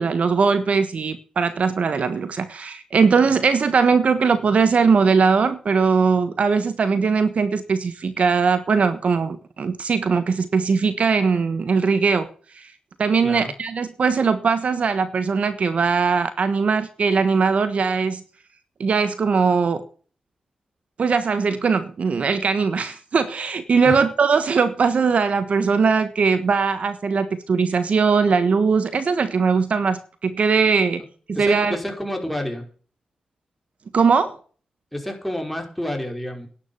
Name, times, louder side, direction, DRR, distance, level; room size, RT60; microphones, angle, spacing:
voice 1, 0.0-12.7 13.0-18.2 18.8-19.9 21.0-31.0 31.3-31.8 33.9-34.4, right 5 dB, 65° right, 11 dB, 1.4 m, -20 dB
voice 2, 31.4-32.7 34.9-36.5, left 1 dB, ahead, 3 dB, 5.2 m, -29 dB
11.5 x 10.0 x 7.2 m, 0.41 s
cardioid pair, 70°, 2 cm